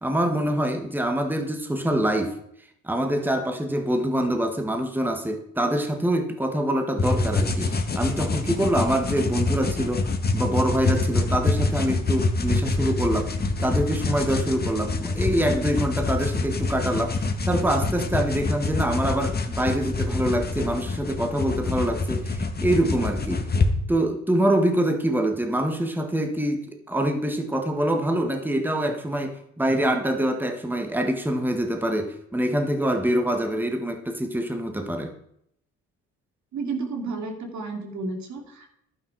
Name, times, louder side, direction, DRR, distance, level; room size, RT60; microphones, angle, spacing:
voice 1, 0.0-2.4 2.8-13.3 13.6-23.5 23.9-35.1, right 1 dB, 5° right, 5 dB, 1.7 m, -25 dB
sound 1, 7.0-23.7, left 3 dB, 30° left, 1.8 m, -26 dB
voice 2, 36.5-38.7, right 3 dB, 70° right, 4 dB, 2.8 m, -32 dB
11.5 x 9.9 x 4.8 m, 0.71 s
cardioid pair, 90°, 30 cm